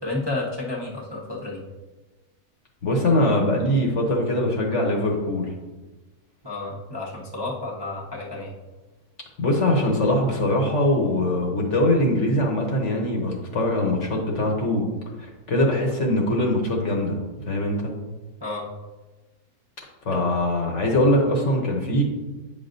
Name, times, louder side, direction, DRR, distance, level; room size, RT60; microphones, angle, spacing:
voice 1, 0.0-1.6 6.4-8.5 18.4-18.6 20.1-20.3, left 2 dB, 20° right, -5 dB, 0.8 m, -31 dB
voice 2, 2.8-5.5 9.4-14.9 15.2-17.2 17.5-17.9 20.0-22.0, left 1 dB, 50° left, 0 dB, 1.2 m, -22 dB
9.0 x 5.4 x 2.6 m, 1.2 s
omnidirectional pair, 1.7 m